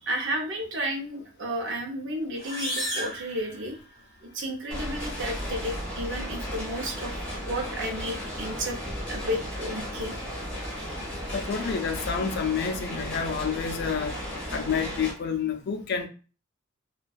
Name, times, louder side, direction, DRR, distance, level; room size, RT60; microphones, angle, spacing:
voice 1, 0.0-3.8 4.2-8.8 9.1-10.1, equal, 65° right, 0.6 m, -32 dB
sound 1, 2.3-4.2, right 1 dB, 30° right, 1.3 m, -34 dB
sound 2, 4.7-15.1, equal, 5° left, 1.0 m, -35 dB
voice 2, 11.3-14.2 14.5-16.1, left 6 dB, 55° left, 0.4 m, -29 dB
2.5 x 2.2 x 2.3 m
head